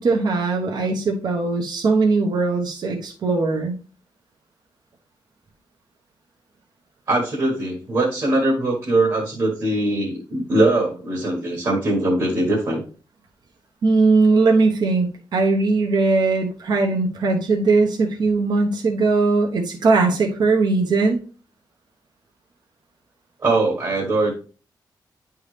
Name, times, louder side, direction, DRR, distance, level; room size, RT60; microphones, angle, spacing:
voice 1, 0.0-3.8 13.8-21.2, right 3 dB, 65° right, 2 dB, 0.9 m, -19 dB
voice 2, 7.1-12.8 23.4-24.3, right 2 dB, 45° right, -2 dB, 1.5 m, -21 dB
9.6 x 3.5 x 3.2 m, 0.39 s
wide cardioid pair, 160°, 8 cm